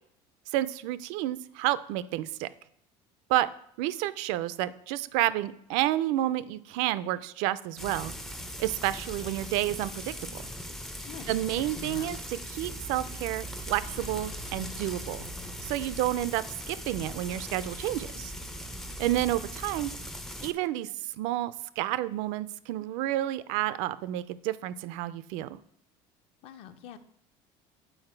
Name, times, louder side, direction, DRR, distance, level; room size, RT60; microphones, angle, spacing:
voice 1, 0.5-2.5 3.3-3.5 3.8-8.1 8.6-10.0 10.3-10.4 11.3-15.2 15.6-18.3 19.0-19.9 20.4-20.9 21.2-25.6, right 14 dB, 75° right, 15 dB, 0.4 m, -30 dB
Frying (food), 7.8-20.5, equal, 5° left, 0.4 m, -40 dB
voice 2, 11.0-11.3 11.8-12.2 26.4-27.0, left 9 dB, 55° left, 11 dB, 0.5 m, -44 dB
sound 1, 13.6-18.5, left 6 dB, 85° left, 1.4 m, -50 dB
7.8 x 4.0 x 4.4 m, 0.71 s
cardioid pair, 165°, 12 cm